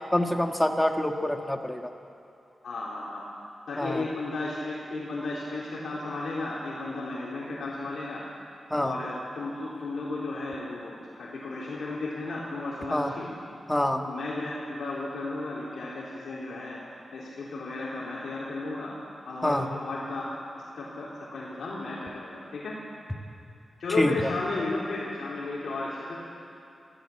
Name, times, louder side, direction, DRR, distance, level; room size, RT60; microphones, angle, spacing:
voice 1, 0.1-1.9 3.8-4.0 8.7-8.9 12.9-13.1 13.7-14.0 19.4-19.7 24.0-24.1, left 1 dB, 10° left, 4 dB, 1.5 m, -26 dB
voice 2, 2.6-3.2 3.7-8.2 8.8-13.3 14.1-16.8 17.1-18.9 19.3-20.3 20.7-22.8 23.8-26.2, left 2 dB, 80° left, -7 dB, 3.7 m, -34 dB
24.0 x 15.0 x 8.6 m, 2.7 s
wide cardioid pair, 130°, 0 cm